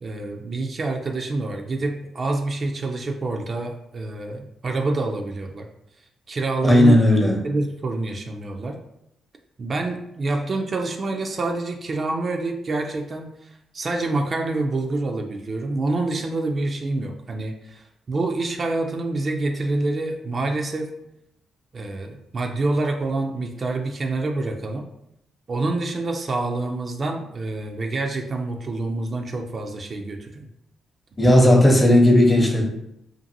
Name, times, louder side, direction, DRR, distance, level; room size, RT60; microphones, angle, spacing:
voice 1, 0.0-5.7 6.3-7.0 7.4-8.8 9.6-20.9 21.7-24.9 25.5-30.5, right 2 dB, 45° right, 3 dB, 0.3 m, -27 dB
voice 2, 6.6-7.4 31.2-32.6, left 1 dB, 20° left, 1 dB, 0.7 m, -15 dB
2.6 x 2.5 x 2.6 m, 0.80 s
supercardioid pair, 55°, 0 cm